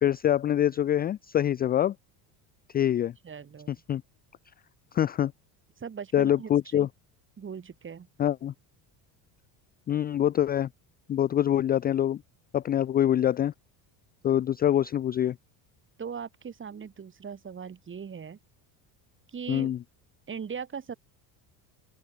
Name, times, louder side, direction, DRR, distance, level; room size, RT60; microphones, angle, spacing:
voice 1, 0.0-1.9 2.7-3.1 3.7-4.0 4.9-5.3 6.1-6.9 8.2-8.5 9.9-10.7 11.1-12.2 12.5-13.5 14.2-15.4 19.5-19.8, left 11 dB, 25° left, 0.3 m, -25 dB
voice 2, 3.2-3.7 5.8-6.9 7.4-8.1 16.0-18.4 19.3-19.7 20.3-20.9, right 6 dB, 25° right, 3.3 m, -39 dB
open air
cardioid pair, 130°, 47 cm